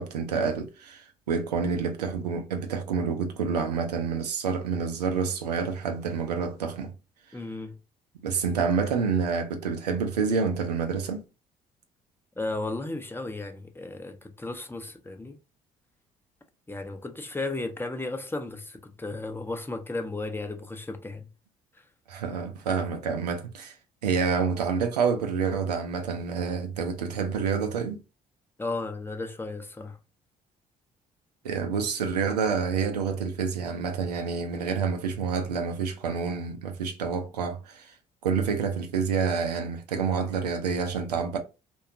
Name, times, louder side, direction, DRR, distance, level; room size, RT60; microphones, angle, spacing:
voice 1, 0.0-6.9 8.2-11.2 22.1-23.7 24.0-28.0 31.4-37.9 38.2-41.4, right 5 dB, 90° right, 0.4 m, -28 dB
voice 2, 7.3-7.8 12.4-15.4 16.7-21.3 21.7-21.8 28.6-30.0, left 2 dB, 10° left, 0.6 m, -34 dB
2.7 x 2.2 x 2.5 m
hypercardioid pair, 50°, 20 cm